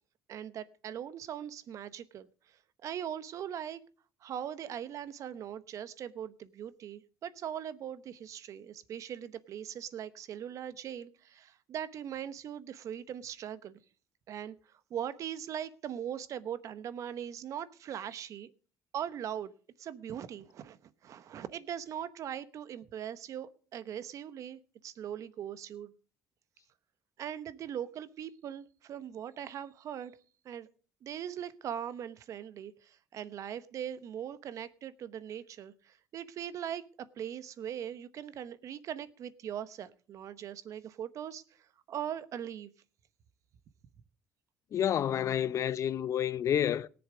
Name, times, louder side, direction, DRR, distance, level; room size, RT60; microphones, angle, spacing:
voice 1, 0.3-2.3 2.8-3.8 4.2-13.8 14.3-14.5 14.9-18.5 18.9-19.5 19.8-25.9 27.2-30.1 30.4-30.7 31.0-36.8 37.2-42.7, right 9 dB, 60° right, 1.0 m, -40 dB
voice 2, 44.7-46.9, left 10 dB, 55° left, 0.6 m, -29 dB
18.5 x 7.1 x 5.0 m
supercardioid pair, 75°, 6 cm